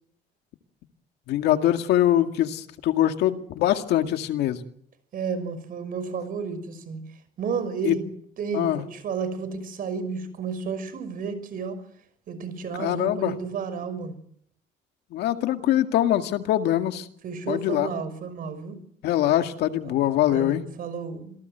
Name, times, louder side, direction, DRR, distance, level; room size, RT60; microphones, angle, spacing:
voice 1, 1.3-4.6 7.8-7.9 8.5-8.8 12.8-13.3 15.1-17.1 17.5-17.9 19.0-20.6, left 12 dB, 80° left, 7 dB, 2.1 m, -23 dB
voice 2, 5.1-7.0 7.4-8.0 8.4-11.8 12.3-14.2 17.2-18.8 19.8-19.9 20.3-21.3, right 5 dB, 55° right, 12 dB, 5.8 m, -32 dB
27.0 x 18.5 x 8.0 m, 0.68 s
cardioid pair, 110°, 17 cm